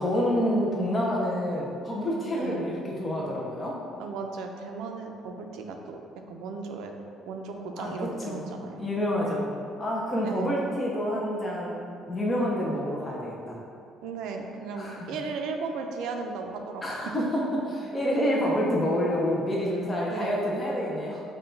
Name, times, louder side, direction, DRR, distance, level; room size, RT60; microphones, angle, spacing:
voice 1, 0.0-3.8 7.8-7.9 8.2-8.4 8.8-9.5 9.8-13.6 14.8-15.2 16.8-21.2, equal, 15° left, -4 dB, 0.5 m, -28 dB
voice 2, 2.4-2.7 4.0-6.0 6.3-6.9 7.2-8.9 9.2-9.4 10.2-10.5 14.0-17.0 20.1-20.3, right 4 dB, 75° right, 3 dB, 0.4 m, -36 dB
5.8 x 2.2 x 3.8 m, 2.5 s
cardioid pair, 170°, 0 cm